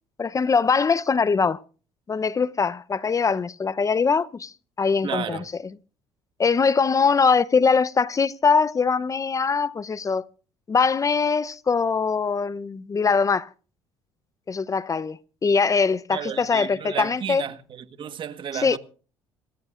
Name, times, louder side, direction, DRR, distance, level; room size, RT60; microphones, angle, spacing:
voice 1, 0.2-1.6 2.1-4.5 4.8-5.4 6.4-10.2 10.7-13.5 14.5-17.4 18.6-18.8, left 5 dB, 30° left, 0.8 m, -22 dB
voice 2, 5.0-5.5 16.1-18.8, right 8 dB, 50° right, 1.5 m, -32 dB
27.0 x 15.0 x 2.5 m
supercardioid pair, 70°, 11 cm